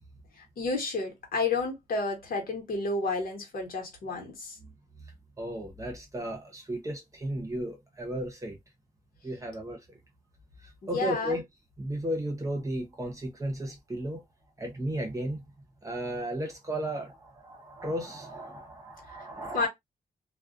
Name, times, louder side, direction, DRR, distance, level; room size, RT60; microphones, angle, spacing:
voice 1, 0.4-4.6 10.8-11.4 19.1-19.3 19.5-19.7, left 3 dB, 75° left, 1.1 m, -31 dB
voice 2, 5.4-8.6 9.2-10.0 10.6-11.4 11.8-14.2 14.6-15.4 15.8-19.7, right 1 dB, 20° right, 0.7 m, -34 dB
2.3 x 2.2 x 2.4 m
wide cardioid pair, 145°, 15 cm